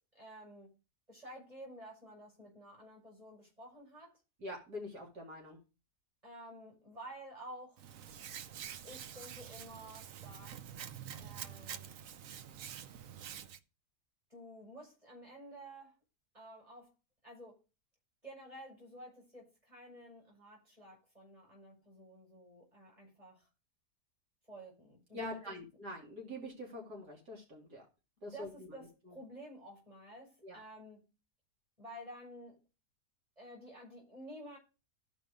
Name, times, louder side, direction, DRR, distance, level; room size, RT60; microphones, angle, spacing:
voice 1, 0.1-0.7 1.1-4.2 6.2-7.8 8.8-10.6 11.2-11.9 14.3-15.9 16.3-16.9 17.2-17.6 18.2-23.5 24.5-25.5 28.3-31.0 31.8-32.6 33.4-34.6, right 1 dB, 20° right, 5.6 m, -51 dB
voice 2, 4.4-5.6 25.1-27.8 28.2-28.7 29.1-29.2 30.4-30.6, left 1 dB, 80° right, 3.4 m, -44 dB
Hands, 7.8-13.6, right 9 dB, 65° right, 1.0 m, -47 dB
15.0 x 5.1 x 5.0 m
omnidirectional pair, 1.7 m